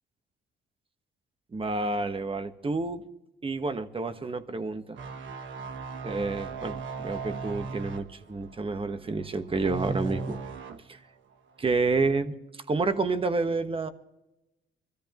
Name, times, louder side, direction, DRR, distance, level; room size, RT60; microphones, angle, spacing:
voice 1, 1.5-3.0 3.4-5.0 6.0-10.4 10.9-11.0 11.6-12.3 12.7-13.9, right 3 dB, 25° right, 9 dB, 1.3 m, -29 dB
sound 1, 5.0-11.0 11.3-11.6, right 4 dB, 75° right, 1.2 m, -37 dB
24.0 x 14.0 x 3.0 m, 0.92 s
cardioid pair, 90°, 20 cm